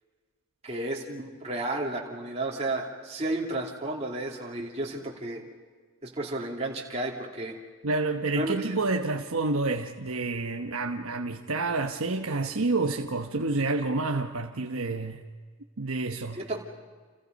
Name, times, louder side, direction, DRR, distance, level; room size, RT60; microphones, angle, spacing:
voice 1, 0.6-5.4 6.0-7.6 8.4-8.7 16.3-16.6, right 2 dB, 30° right, 2.9 m, -32 dB
voice 2, 7.8-15.2 15.8-16.4, right 3 dB, 85° right, 1.1 m, -29 dB
29.0 x 28.5 x 5.3 m
head